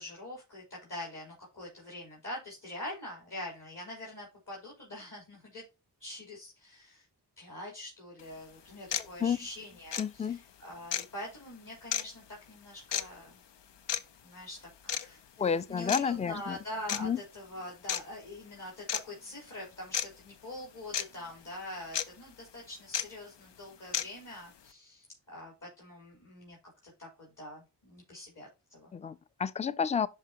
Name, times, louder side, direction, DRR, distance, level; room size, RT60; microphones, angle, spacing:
voice 1, 0.0-5.6 6.0-7.0 7.4-13.4 13.9-14.0 14.2-14.6 14.8-26.6 26.8-28.9, left 1 dB, 50° left, 3.9 m, -44 dB
sound 1, 8.2-8.3 8.9-9.1 9.9-10.1 10.9-11.1 11.9-12.0 12.9-13.1 13.9-14.0 14.9-15.1 15.9-16.0 16.9-17.0 17.9-18.0 18.9-19.0 19.9-20.1 20.9-21.0 21.9-22.1 22.9-23.0 23.9-24.1, left 9 dB, 80° left, 0.6 m, -31 dB
voice 2, 10.0-10.4 15.4-16.6 16.9-17.2 28.9-30.1, left 6 dB, 15° left, 0.4 m, -30 dB
11.0 x 4.8 x 2.9 m
cardioid pair, 55°, 42 cm